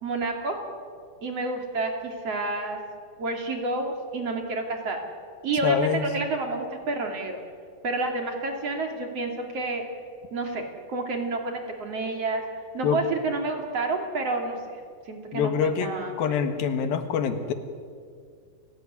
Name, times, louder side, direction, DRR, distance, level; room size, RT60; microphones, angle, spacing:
voice 1, 0.0-0.6 1.2-2.8 3.2-5.0 5.4-7.4 7.8-9.9 10.3-12.4 12.7-14.8 15.1-16.4, right 3 dB, 45° right, 3 dB, 3.6 m, -29 dB
voice 2, 5.6-6.1 12.8-13.0 15.3-15.9 16.2-17.5, left 7 dB, 85° left, 8 dB, 3.4 m, -25 dB
29.5 x 17.5 x 9.8 m, 2.2 s
omnidirectional pair, 4.1 m